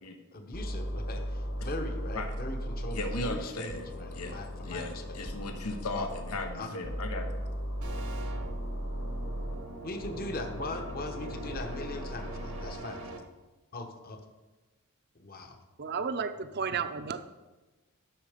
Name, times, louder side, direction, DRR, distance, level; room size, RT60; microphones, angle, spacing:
voice 1, 0.3-5.2 5.9-6.1 6.5-6.8 9.8-13.0 13.7-14.2 15.1-15.6, left 2 dB, 40° left, 5 dB, 1.1 m, -40 dB
sound 1, 0.5-3.4 3.7-6.5 6.8-9.6 10.0-12.6, equal, 65° left, 3.0 m, -37 dB
voice 2, 2.9-3.8 4.1-7.3, left 2 dB, 90° left, 5 dB, 1.1 m, -37 dB
sound 2, 7.8-13.2, right 2 dB, 80° right, 1.3 m, -43 dB
voice 3, 15.8-17.2, right 5 dB, 45° right, 10 dB, 0.6 m, -32 dB
12.0 x 6.4 x 5.1 m, 1.2 s
head